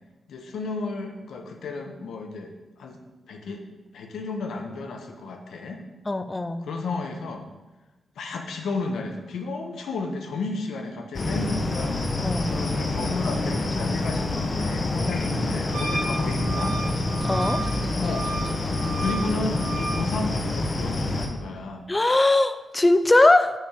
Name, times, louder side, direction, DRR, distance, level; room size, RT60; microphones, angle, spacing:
voice 1, 0.3-3.0 3.3-3.6 3.9-5.8 6.6-7.5 8.2-12.0 12.4-16.7 18.0-18.3 19.0-21.9, left 3 dB, 85° left, 4 dB, 1.0 m, -33 dB
voice 2, 6.1-6.7 12.2-12.5 17.2-17.6 21.9-23.5, left 2 dB, 15° left, 10 dB, 0.4 m, -20 dB
sound 1, 11.1-21.3, left 2 dB, 30° left, 0.8 m, -27 dB
Wind instrument woodwind instrument, 15.7-20.0, right 2 dB, 85° right, 1.8 m, -33 dB
7.4 x 5.7 x 4.9 m, 1.1 s
wide cardioid pair, 165°, 0 cm